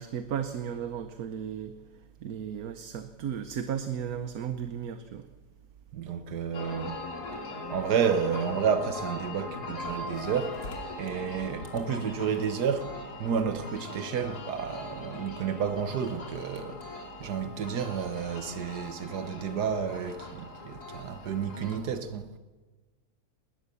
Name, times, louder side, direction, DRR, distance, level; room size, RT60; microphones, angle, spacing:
voice 1, 0.0-1.7 2.2-5.3, right 8 dB, 70° right, 1.3 m, -35 dB
voice 2, 5.9-7.0 7.7-10.6 11.0-12.9 13.2-16.8 17.2-22.3, right 7 dB, 85° right, 1.7 m, -30 dB
sound 1, 6.5-21.8, left 2 dB, 80° left, 3.3 m, -40 dB
20.0 x 19.0 x 7.0 m
omnidirectional pair, 1.7 m